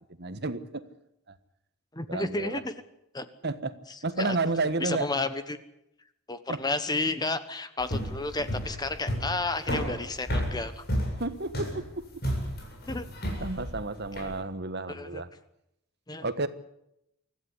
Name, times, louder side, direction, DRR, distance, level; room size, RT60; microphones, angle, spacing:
voice 1, 0.2-0.8 2.1-2.6 3.4-3.7 4.0-5.1 6.5-6.6 8.4-8.5 11.2-12.1 13.4-15.3 16.2-16.5, right 3 dB, 50° right, 12 dB, 1.4 m, -31 dB
voice 2, 1.9-2.7 3.1-3.3 4.2-4.4 4.8-5.6 6.3-10.8 12.9-13.1 14.2-14.3 14.9-15.2 16.1-16.3, left 2 dB, 20° left, 11 dB, 1.2 m, -32 dB
sound 1, 7.8-14.3, equal, 45° left, 7.9 m, -32 dB
25.0 x 15.0 x 9.7 m, 0.80 s
head